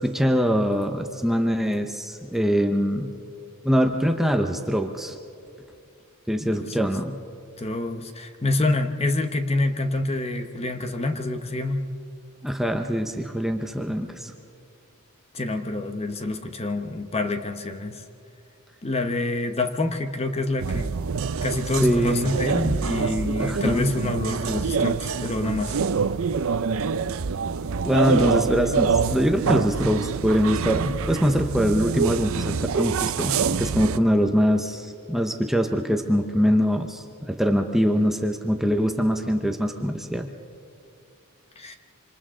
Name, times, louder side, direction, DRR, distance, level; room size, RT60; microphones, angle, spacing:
voice 1, 0.0-3.1 3.6-5.2 6.3-7.2 12.4-14.3 21.8-22.3 23.4-23.9 27.8-40.3, equal, ahead, 4 dB, 0.8 m, -23 dB
voice 2, 6.4-6.9 7.6-11.9 15.3-18.0 18.8-20.9 21.4-25.8 41.6-41.8, left 2 dB, 30° left, 6 dB, 1.0 m, -27 dB
sound 1, 20.6-34.0, right 5 dB, 65° right, 0.5 m, -26 dB
26.5 x 26.0 x 3.8 m, 2.5 s
head